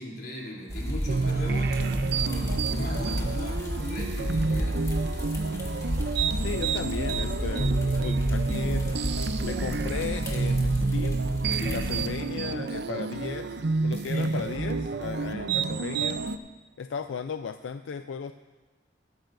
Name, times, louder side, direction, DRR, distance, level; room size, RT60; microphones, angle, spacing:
voice 1, 0.0-4.8 11.5-11.8 14.0-14.3, left 1 dB, 55° left, -3 dB, 3.1 m, -38 dB
sound 1, 0.7-12.0, equal, 20° left, 1.9 m, -31 dB
sound 2, 1.1-16.4, right 4 dB, 60° right, 0.5 m, -29 dB
voice 2, 6.3-8.8 9.4-11.2 11.5-16.2 16.8-18.3, left 6 dB, 85° left, 9 dB, 0.4 m, -36 dB
18.0 x 13.0 x 2.6 m, 1.3 s
head